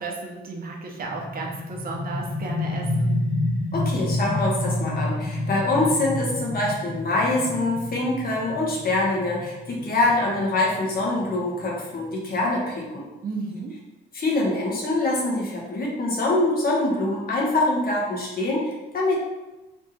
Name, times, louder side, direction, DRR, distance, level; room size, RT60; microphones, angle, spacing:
voice 1, 0.0-3.2 13.2-13.8, right 3 dB, 45° right, 0 dB, 0.9 m, -33 dB
sound 1, 1.0-12.5, left 1 dB, ahead, 1.1 m, -29 dB
voice 2, 3.7-13.0 14.1-19.2, left 2 dB, 50° left, -3 dB, 1.3 m, -24 dB
3.5 x 2.6 x 4.2 m, 1.1 s
cardioid pair, 90°, 20 cm